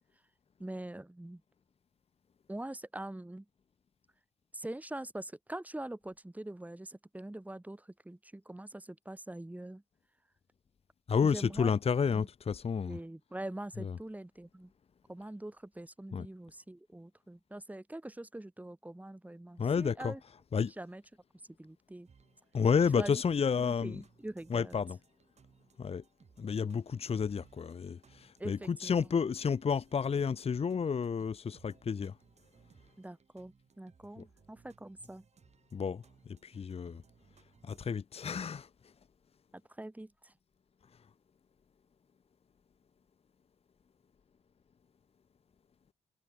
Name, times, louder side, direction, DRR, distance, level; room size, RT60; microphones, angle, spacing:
voice 1, 0.6-1.4 2.5-3.5 4.5-9.8 11.2-11.8 12.1-12.3 12.9-14.7 15.1-20.2 20.6-21.0 21.6-22.1 22.9-23.2 23.6-24.8 28.4-29.1 33.0-35.2 39.5-40.3, right 1 dB, 10° right, 2.2 m, -44 dB
voice 2, 11.1-13.0 13.8-14.0 16.1-16.3 19.6-20.7 22.5-24.0 24.5-25.0 25.8-26.0 26.4-32.2 34.2-34.3 35.7-37.0 37.6-38.7, left 6 dB, 40° left, 1.1 m, -31 dB
sound 1, 22.0-38.0, right 6 dB, 45° right, 5.2 m, -64 dB
supercardioid pair, 55°, 15 cm